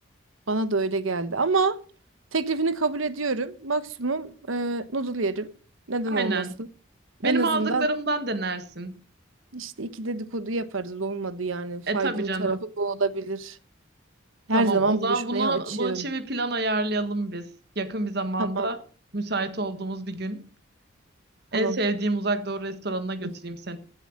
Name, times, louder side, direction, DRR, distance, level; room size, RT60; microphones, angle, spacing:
voice 1, 0.5-1.8 2.3-5.5 5.9-6.4 7.2-7.9 9.5-13.6 14.5-16.1 18.4-18.7 21.5-21.8, right 3 dB, 80° right, 1.2 m, -27 dB
voice 2, 6.1-6.5 7.2-9.0 11.9-12.6 14.5-18.8 19.1-20.5 21.5-23.8, right 2 dB, 50° right, 1.5 m, -28 dB
16.0 x 7.9 x 6.5 m
head